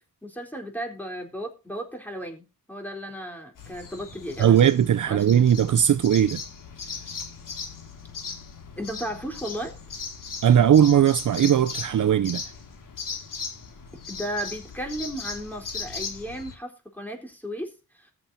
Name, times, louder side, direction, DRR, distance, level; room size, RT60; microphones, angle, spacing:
voice 1, 0.2-4.7 5.0-5.3 8.8-9.8 14.1-18.1, equal, 5° left, 4.1 m, -35 dB
sound 1, 3.6-16.5, left 5 dB, 65° left, 2.4 m, -38 dB
voice 2, 4.4-6.4 10.4-12.4, right 9 dB, 60° right, 0.6 m, -19 dB
20.5 x 7.2 x 2.8 m
wide cardioid pair, 130°, 36 cm